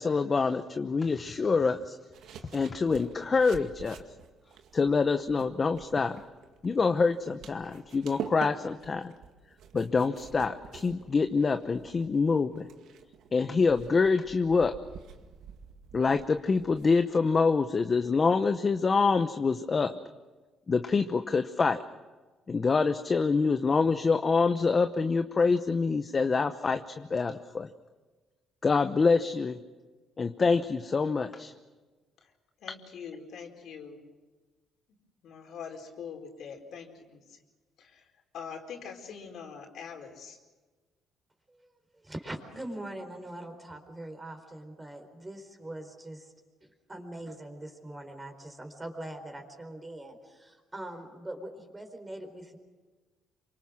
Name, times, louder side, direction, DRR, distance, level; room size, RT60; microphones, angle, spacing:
voice 1, 0.0-2.0 2.5-4.0 4.7-6.2 6.6-9.1 9.7-12.7 13.3-14.8 15.9-20.0 20.7-21.8 22.5-27.7 28.6-29.6 30.2-31.5, left 4 dB, 30° left, 8 dB, 0.9 m, -26 dB
sound 1, 2.1-17.1, right 8 dB, 75° right, 2.1 m, -47 dB
voice 2, 32.6-34.1 35.2-37.4 37.8-38.1 38.3-40.4, left 6 dB, 65° left, 3 dB, 4.5 m, -43 dB
voice 3, 41.5-46.3 46.6-52.6, right 1 dB, 15° right, 5 dB, 4.3 m, -42 dB
28.0 x 25.0 x 6.3 m, 1.3 s
cardioid pair, 130°, 0 cm